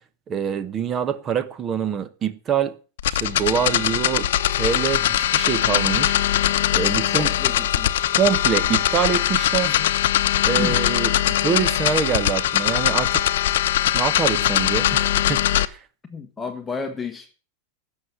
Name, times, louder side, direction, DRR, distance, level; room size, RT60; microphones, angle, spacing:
voice 1, 0.3-2.8 3.1-4.3 4.6-6.2 6.7-7.3 8.2-9.8 10.4-11.1 11.4-13.3 13.9-15.8, right 8 dB, 20° right, 1.1 m, -25 dB
sound 1, 3.0-15.7, left 12 dB, 80° left, 0.9 m, -21 dB
voice 2, 7.1-8.1 9.6-10.0 10.6-10.8 16.1-17.3, left 5 dB, 10° left, 1.1 m, -32 dB
15.5 x 6.6 x 7.9 m
supercardioid pair, 165°, 0 cm